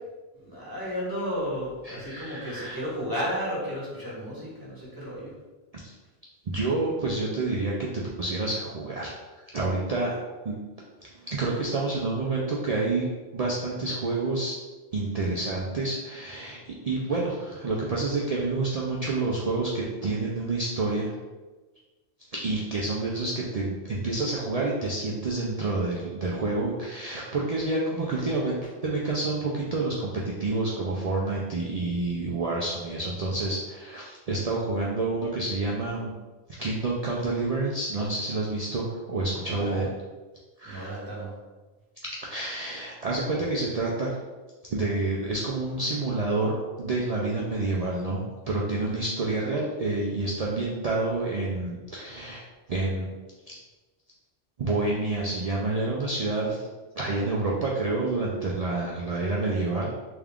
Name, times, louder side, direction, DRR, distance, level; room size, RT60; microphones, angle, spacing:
voice 1, 0.4-5.3 39.4-39.8 40.6-41.3, equal, 20° right, -8 dB, 1.1 m, -33 dB
voice 2, 1.8-2.8 5.7-5.9 6.5-9.2 9.5-10.2 10.4-10.5 11.0-13.1 13.3-14.5 14.9-16.6 16.8-21.1 22.3-36.1 36.6-39.9 40.6-40.9 42.2-44.2 44.7-48.2 48.5-52.4 52.7-53.1 53.5-53.6 54.6-56.7 57.0-59.9, right 2 dB, 60° right, -4 dB, 0.4 m, -28 dB
3.5 x 2.3 x 3.5 m, 1.2 s
omnidirectional pair, 1.2 m